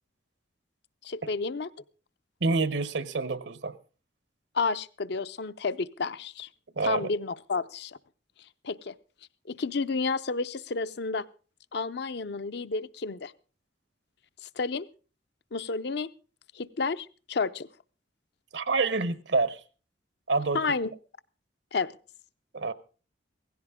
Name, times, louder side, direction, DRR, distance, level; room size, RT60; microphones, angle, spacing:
voice 1, 1.0-1.7 4.5-6.5 6.8-8.0 8.6-8.9 9.5-11.2 11.7-13.3 14.6-14.9 15.5-16.1 16.5-17.7 20.5-20.9 21.7-21.9, left 4 dB, 65° left, 0.6 m, -31 dB
voice 2, 2.4-3.8 6.8-7.1 18.5-19.6 20.3-20.6 22.5-22.7, right 3 dB, 75° right, 1.0 m, -27 dB
17.0 x 16.0 x 3.6 m
head